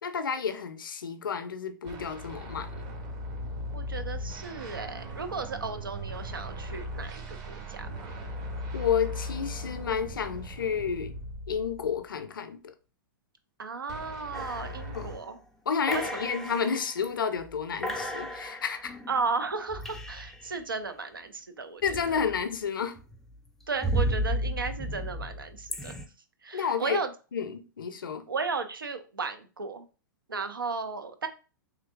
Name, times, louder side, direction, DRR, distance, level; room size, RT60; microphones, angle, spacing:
voice 1, 0.0-2.8 8.7-11.2 11.5-12.7 14.9-15.1 15.7-19.0 21.8-23.0 26.5-27.0 27.3-28.3, left 6 dB, 80° left, 0.5 m, -31 dB
sound 1, 1.8-12.1 13.9-15.2, equal, 35° right, 0.9 m, -38 dB
voice 2, 3.7-8.1 13.6-15.4 15.9-16.0 19.1-21.8 22.1-22.2 23.7-26.0 26.4-27.1 28.3-29.9 30.3-31.3, right 4 dB, 90° right, 0.5 m, -34 dB
sound 2, 14.3-15.3 15.9-17.1 17.5-17.6 17.8-20.5 21.8-22.6 23.0-26.1, right 1 dB, 5° left, 0.3 m, -34 dB
3.1 x 2.8 x 2.4 m
hypercardioid pair, 110°, 11 cm